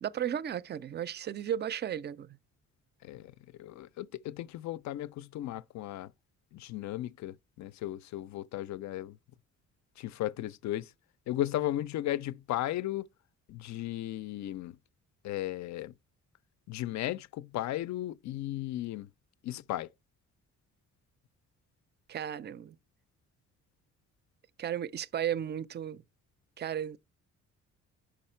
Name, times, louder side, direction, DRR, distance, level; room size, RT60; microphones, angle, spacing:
voice 1, 0.0-2.4 22.1-22.8 24.6-26.0 26.6-27.0, right 10 dB, 35° right, 0.4 m, -34 dB
voice 2, 3.0-6.1 6.5-9.2 10.0-10.9 11.3-13.1 13.5-14.8 15.2-15.9 16.7-19.1 19.4-19.9, left 14 dB, 65° left, 0.4 m, -35 dB
5.6 x 5.0 x 4.3 m
cardioid pair, 90°, 30 cm